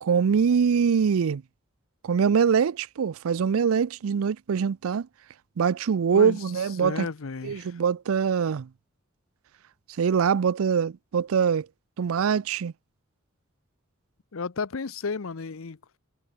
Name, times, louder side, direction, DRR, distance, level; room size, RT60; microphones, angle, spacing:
voice 1, 0.0-1.4 2.0-5.1 5.6-7.1 7.4-8.7 10.0-11.7 12.0-12.7, right 6 dB, 80° right, 0.4 m, -23 dB
voice 2, 6.1-7.8 14.3-16.0, left 4 dB, 75° left, 0.7 m, -33 dB
head